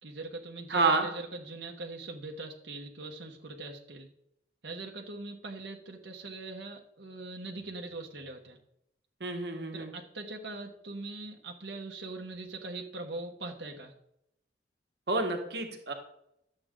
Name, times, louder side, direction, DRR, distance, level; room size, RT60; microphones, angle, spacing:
voice 1, 0.0-4.1 4.6-8.6 9.7-13.9, right 2 dB, 80° right, 1 dB, 1.3 m, -41 dB
voice 2, 0.7-1.1 9.2-9.9 15.1-15.9, right 3 dB, 65° right, 4 dB, 1.4 m, -29 dB
11.5 x 7.8 x 3.8 m, 0.77 s
head